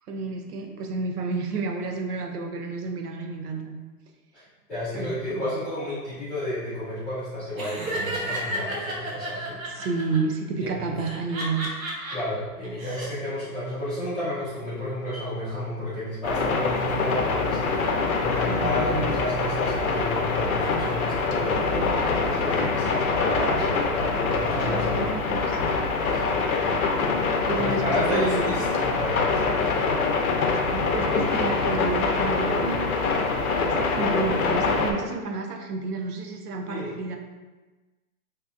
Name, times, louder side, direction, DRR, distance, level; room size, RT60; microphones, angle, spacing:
voice 1, 0.1-3.8 4.9-5.5 9.6-11.7 18.4-19.1 24.5-25.6 27.4-28.5 30.7-33.1 33.6-37.2, right 4 dB, 75° right, 3 dB, 0.7 m, -31 dB
voice 2, 4.7-9.6 10.6-10.9 12.1-17.9 18.2-23.9 24.4-25.1 26.1-26.4 27.5-30.0 36.7-36.9, left 1 dB, ahead, -22 dB, 0.5 m, -31 dB
Laughter, 7.6-10.2 11.0-12.2 12.6-13.1, right 1 dB, 60° right, 1.0 m, -32 dB
sound 1, 16.2-34.9, left 4 dB, 70° left, 0.7 m, -24 dB
3.7 x 2.7 x 2.5 m, 1.2 s
hypercardioid pair, 155°, 46 cm